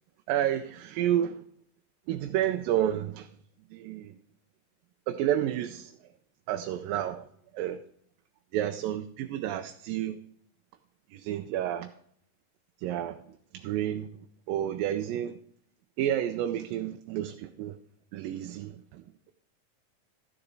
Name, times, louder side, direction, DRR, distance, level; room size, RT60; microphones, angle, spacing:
voice 1, 0.3-1.4 2.1-3.3 3.7-4.1 5.1-5.9 6.5-7.3 7.5-7.8 8.5-10.2 11.1-11.9 12.8-13.2 13.5-14.1 14.5-15.4 16.0-17.8 18.1-19.0, right 11 dB, 90° right, 6 dB, 2.4 m, -30 dB
13.5 x 9.7 x 4.0 m, 0.64 s
omnidirectional pair, 3.9 m